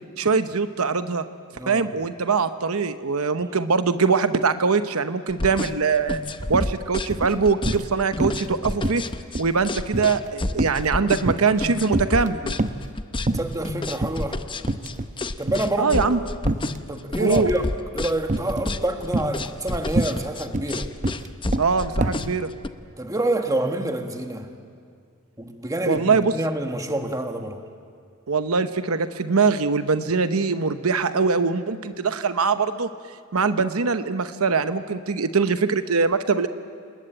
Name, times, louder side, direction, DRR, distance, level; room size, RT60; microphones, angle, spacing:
voice 1, 0.2-1.2 1.7-6.2 6.5-9.0 9.4-12.6 15.8-16.2 17.2-17.5 21.6-22.5 25.9-26.3 28.3-32.9 33.3-36.5, right 4 dB, 80° right, 10 dB, 0.9 m, -22 dB
sound 1, 5.3-22.7, left 2 dB, 25° left, 0.7 m, -30 dB
sound 2, 5.5-5.7 6.0-6.7 7.1-7.9 8.2-8.5 8.8-11.6 11.9-12.9 13.3-13.7 14.0-14.2 14.6-15.2 15.5-16.8 17.4-17.8 18.3-18.8 19.1-22.3, right 2 dB, 35° right, 0.8 m, -27 dB
voice 2, 13.3-14.4 15.4-16.1 16.9-17.6 17.9-20.9 23.0-24.5 25.4-27.6, right 1 dB, 15° right, 5 dB, 1.6 m, -27 dB
28.5 x 20.0 x 9.1 m, 2.3 s
head